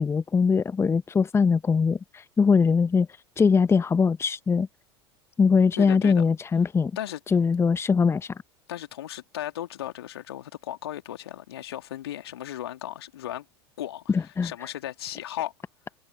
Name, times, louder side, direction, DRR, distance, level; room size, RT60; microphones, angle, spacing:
voice 1, 0.0-3.1 3.4-4.7 5.4-6.9 7.3-8.3 14.1-14.5, left 5 dB, 20° left, 1.1 m, -21 dB
voice 2, 5.8-6.2 7.0-7.2 8.7-13.4 13.8-15.5, left 12 dB, 70° left, 3.0 m, -36 dB
figure-of-eight pair, 75°, 14 cm